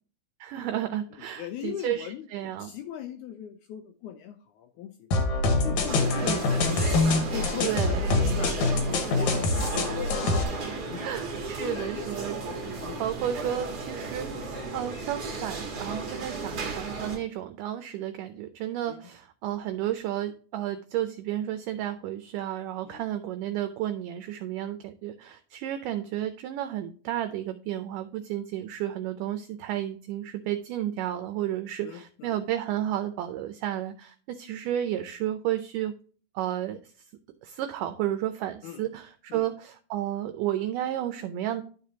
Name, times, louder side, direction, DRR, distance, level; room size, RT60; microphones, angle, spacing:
voice 1, 0.4-2.7 6.1-6.5 7.6-8.0 9.9-10.0 11.0-12.4 13.0-35.9 36.4-36.8 37.4-41.6, right 12 dB, 80° right, 8 dB, 2.0 m, -32 dB
voice 2, 1.4-2.3 2.6-6.5 7.3-10.2 10.9-11.1 11.6-12.3 12.8-13.0 18.9-19.0 22.8-23.0 31.8-32.4 38.6-38.8 39.3-39.5, left 10 dB, 80° left, 6 dB, 1.8 m, -39 dB
sound 1, 5.1-10.4, left 3 dB, 65° left, 2.3 m, -25 dB
sound 2, 5.9-17.2, right 4 dB, 55° right, 1.1 m, -35 dB
11.5 x 5.1 x 2.8 m, 0.42 s
omnidirectional pair, 4.1 m